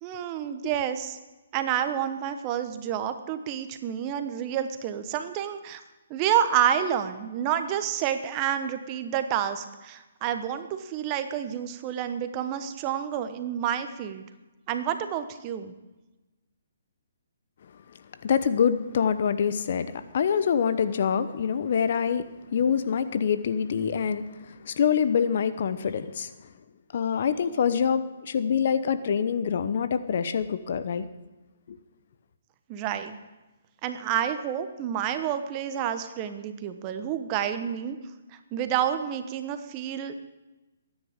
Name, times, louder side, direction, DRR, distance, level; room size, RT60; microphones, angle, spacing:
voice 1, 0.0-1.2 1.5-5.8 6.1-14.2 14.7-15.7 32.7-33.2 33.8-38.0 38.5-40.1, right 9 dB, 30° right, 9 dB, 1.1 m, -29 dB
voice 2, 18.2-26.3 26.9-31.1 31.7-31.8, left 7 dB, 55° left, 12 dB, 0.8 m, -25 dB
22.0 x 9.8 x 3.7 m, 1.1 s
figure-of-eight pair, 135°, 0 cm